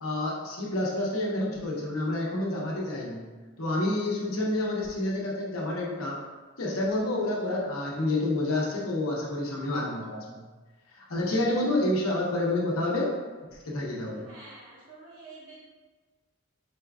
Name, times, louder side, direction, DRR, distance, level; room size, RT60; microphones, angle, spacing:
voice 1, 0.0-3.2 3.6-6.2 6.6-10.4 10.9-13.1 13.7-14.3, left 1 dB, 85° left, -4 dB, 0.9 m, -29 dB
voice 2, 14.0-15.7, right 3 dB, 80° right, -7 dB, 1.5 m, -49 dB
4.4 x 3.4 x 2.4 m, 1.3 s
head